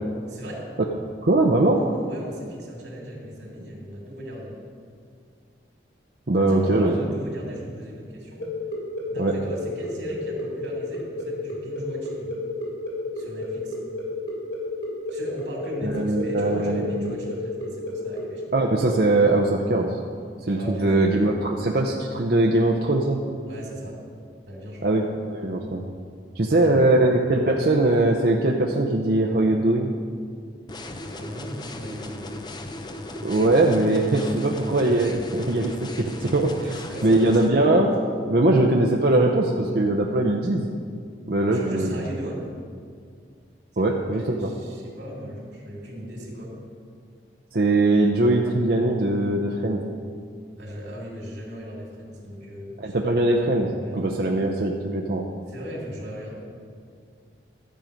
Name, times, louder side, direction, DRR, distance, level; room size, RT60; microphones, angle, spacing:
voice 1, 0.3-0.7 1.7-4.6 6.3-8.4 9.1-12.3 13.1-13.8 15.1-18.6 20.6-21.2 23.5-24.0 24.4-24.9 26.4-27.0 30.9-32.4 36.6-37.6 41.5-42.5 43.7-46.5 50.6-53.0 53.8-54.1 55.5-56.5, equal, 90° right, -2 dB, 2.8 m, -37 dB
voice 2, 1.2-1.8 6.3-7.0 9.2-9.3 15.8-17.1 18.5-20.0 20.4-23.2 24.8-25.8 26.4-29.9 33.2-36.7 37.0-37.9 38.3-40.7 41.3-42.0 43.8-44.5 47.5-49.8 52.8-55.3, right 2 dB, 55° right, 0 dB, 0.7 m, -21 dB
sound 1, 8.4-18.2, left 2 dB, 80° left, 3.0 m, -31 dB
sound 2, 30.7-37.5, left 1 dB, 25° left, 0.6 m, -37 dB
12.5 x 7.5 x 5.2 m, 2.2 s
head